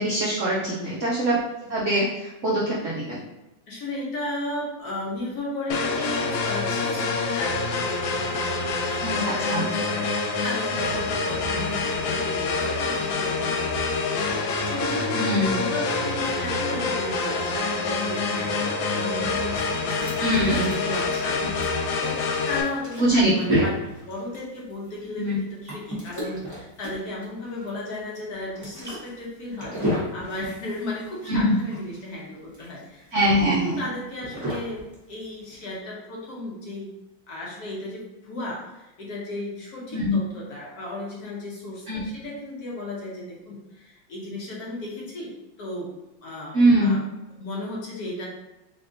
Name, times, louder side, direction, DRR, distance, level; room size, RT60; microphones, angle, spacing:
voice 1, 0.0-1.4 1.7-3.2 9.0-9.7 15.1-15.6 20.2-20.7 23.0-23.6 25.2-25.4 31.3-31.4 33.1-33.8 39.9-40.2 41.9-42.0 46.5-47.0, right 1 dB, 80° right, -6 dB, 0.6 m, -23 dB
voice 2, 0.6-1.1 3.7-21.5 22.0-36.9 37.3-45.3 45.6-45.9 46.2-47.1 47.3-48.3, left 2 dB, 60° left, -4 dB, 1.2 m, -35 dB
sound 1, 5.7-22.6, left 3 dB, 80° left, 1.3 m, -26 dB
sound 2, 19.3-35.8, equal, 10° right, 0.9 m, -33 dB
3.6 x 3.4 x 2.6 m, 0.98 s
omnidirectional pair, 2.1 m